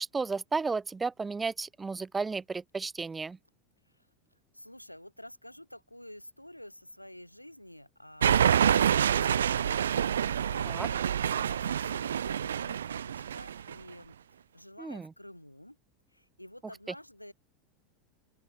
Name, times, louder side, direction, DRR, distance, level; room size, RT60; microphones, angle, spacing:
voice 1, 0.0-3.4 10.7-10.9 14.8-15.1, right 4 dB, 15° right, 2.7 m, -33 dB
voice 2, 4.5-9.8 10.1-14.1 14.5-15.8 16.1-17.3, left 1 dB, 90° left, 6.6 m, -49 dB
sound 1, 8.2-13.7, right 9 dB, 70° right, 0.4 m, -27 dB
open air
figure-of-eight pair, 80°, 0 cm